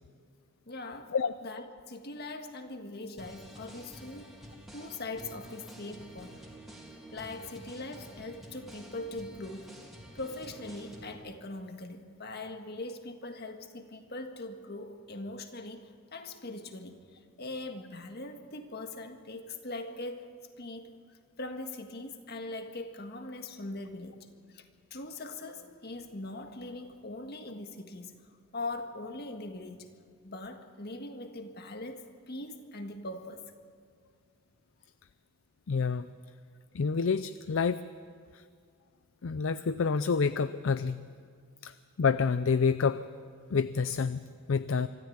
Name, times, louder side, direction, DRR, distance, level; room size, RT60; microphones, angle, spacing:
voice 1, 0.6-1.1 1.4-4.3 4.7-6.4 7.1-9.8 10.1-20.3 20.6-24.6 24.9-28.2 28.5-29.9 30.2-33.5, left 2 dB, 50° left, 6 dB, 1.7 m, -41 dB
sound 1, 3.2-11.1, right 1 dB, ahead, 2.8 m, -49 dB
voice 2, 35.7-36.1 36.7-37.8 38.3-38.4 39.2-41.1 41.6-43.0 43.5-44.9, left 5 dB, 65° left, 14 dB, 0.5 m, -28 dB
25.0 x 14.0 x 8.7 m, 2.1 s
head